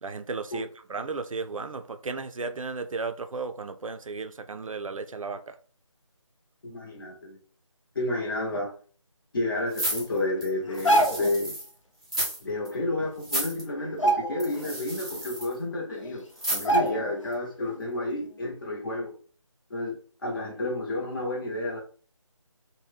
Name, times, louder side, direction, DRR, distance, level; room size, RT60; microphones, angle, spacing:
voice 1, 0.0-5.6, right 4 dB, 80° right, 0.5 m, -34 dB
voice 2, 6.6-7.4 7.9-8.7 9.3-11.6 12.4-19.1 19.7-21.8, left 2 dB, 40° left, 0.8 m, -31 dB
sound 1, 9.7-11.7 12.0-12.4 12.6-12.7 13.2-13.6 14.4-15.5 16.4-16.9 17.3-17.4, right 1 dB, 10° right, 0.4 m, -32 dB
sound 2, 10.7-11.4 12.9-13.0 13.3-13.5 13.9-14.7 15.1-15.2 16.0-16.1 16.6-17.3 17.6-17.8, right 1 dB, 70° left, 0.6 m, -25 dB
2.7 x 2.2 x 3.3 m
figure-of-eight pair, 165°, 17 cm